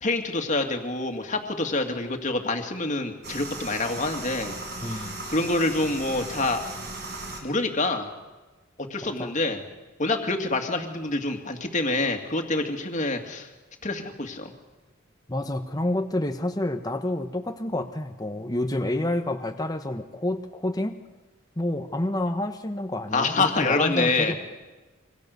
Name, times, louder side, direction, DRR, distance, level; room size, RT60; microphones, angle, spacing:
voice 1, 0.0-4.5 4.8-6.6 7.4-8.1 8.9-9.6 10.0-13.5 13.8-14.5 23.1-24.3, left 2 dB, 35° left, 4 dB, 2.4 m, -26 dB
sound 1, 3.2-7.4, right 2 dB, 55° right, 5.1 m, -37 dB
voice 2, 4.8-5.2 9.0-9.3 15.3-21.0 21.6-24.4, left 1 dB, 20° left, 6 dB, 1.2 m, -29 dB
26.5 x 24.5 x 6.8 m, 1.2 s
head